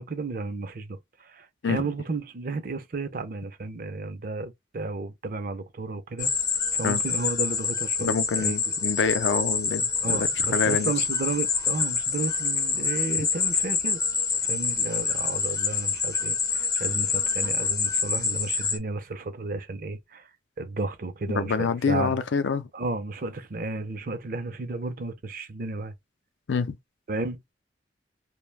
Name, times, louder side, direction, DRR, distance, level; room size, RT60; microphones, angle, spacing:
voice 1, 0.0-6.3 6.7-8.6 10.0-14.0 14.4-20.3 20.6-22.2 22.7-25.9 27.1-27.4, right 3 dB, 50° right, 0.5 m, -33 dB
sound 1, 6.2-18.8, left 5 dB, 20° left, 0.4 m, -26 dB
voice 2, 8.0-10.9 21.3-22.7 26.5-26.8, left 5 dB, 90° left, 0.4 m, -26 dB
2.3 x 2.1 x 3.2 m
head